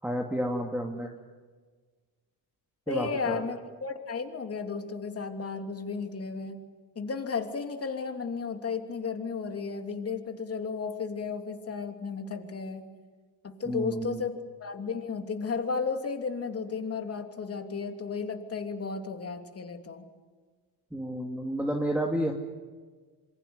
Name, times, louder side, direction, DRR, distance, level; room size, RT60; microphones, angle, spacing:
voice 1, 0.0-1.1 2.9-3.4 13.7-14.2 20.9-22.3, equal, 5° right, 2 dB, 2.5 m, -30 dB
voice 2, 2.9-6.6 6.9-12.8 13.4-20.1, left 5 dB, 30° left, 5 dB, 3.0 m, -34 dB
27.0 x 24.0 x 8.1 m, 1.4 s
cardioid pair, 120°, 44 cm